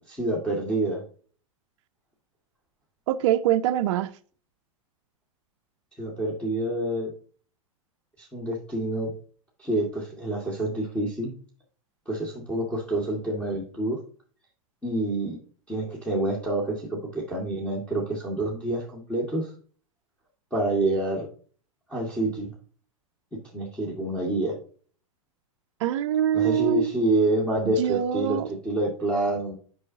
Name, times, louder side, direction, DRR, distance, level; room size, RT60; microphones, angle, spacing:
voice 1, 0.1-1.0 6.0-7.1 8.2-9.1 9.6-11.3 12.1-14.0 14.8-15.4 15.7-19.5 20.5-21.3 21.9-22.5 23.5-24.6 26.3-29.5, right 1 dB, 5° left, 2.0 m, -27 dB
voice 2, 3.1-4.1 25.8-26.9 27.7-28.5, right 11 dB, 55° right, 0.5 m, -24 dB
9.7 x 5.5 x 2.8 m
hypercardioid pair, 100°, 18 cm